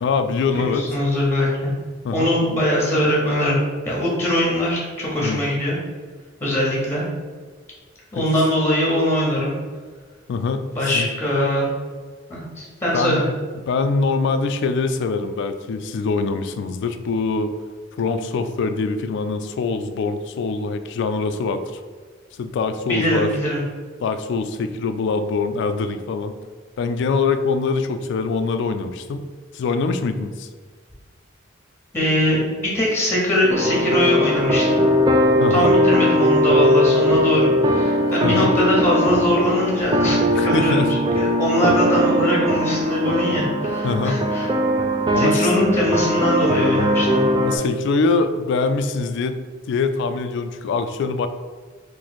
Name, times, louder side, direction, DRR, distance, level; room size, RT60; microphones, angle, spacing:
voice 1, 0.0-0.9 2.0-2.3 5.2-5.4 8.1-8.2 10.3-11.1 12.9-13.2 13.7-17.5 18.0-21.6 22.4-23.3 24.0-26.3 26.8-29.2 29.5-30.5 35.4-35.8 38.2-38.5 40.3-40.9 43.8-44.2 45.1-45.5 47.4-49.3 49.7-51.3, left 4 dB, 65° left, 9 dB, 0.3 m, -23 dB
voice 2, 0.5-1.7 2.1-3.6 3.8-5.8 6.4-7.1 8.1-9.6 10.7-11.7 12.3-13.3 22.8-23.6 31.9-34.8 35.5-40.2 40.4-40.9 41.1-44.5 45.2-47.2, left 1 dB, 10° left, -4 dB, 0.8 m, -21 dB
sound 1, 33.5-47.6, equal, 20° right, 0.3 m, -19 dB
3.0 x 2.7 x 4.1 m, 1.5 s
head